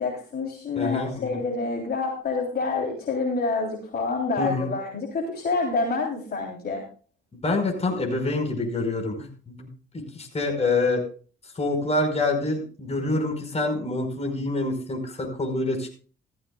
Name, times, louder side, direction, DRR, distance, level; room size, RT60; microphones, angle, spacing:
voice 1, 0.0-6.8, left 3 dB, 50° left, -1 dB, 3.7 m, -27 dB
voice 2, 0.8-1.4 4.4-4.7 7.4-9.7 9.9-11.0 11.6-16.0, left 2 dB, 30° left, 3 dB, 5.2 m, -26 dB
16.0 x 15.0 x 2.4 m, 0.38 s
cardioid pair, 90°, 20 cm